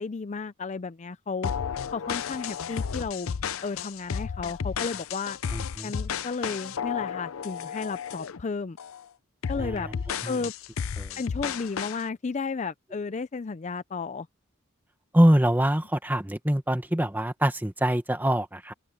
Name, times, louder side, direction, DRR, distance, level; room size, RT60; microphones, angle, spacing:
voice 1, 0.0-1.5 1.9-3.3 3.6-5.4 5.8-8.8 9.5-9.9 10.2-10.5 11.2-14.3, left 4 dB, 35° left, 0.4 m, -33 dB
sound 1, 1.4-8.4 8.8-9.0 9.4-12.0, left 7 dB, 90° left, 0.5 m, -33 dB
voice 2, 5.5-5.9 9.6-9.9 10.2-10.4 11.0-11.2 15.1-18.7, right 1 dB, 10° right, 1.3 m, -24 dB
open air
head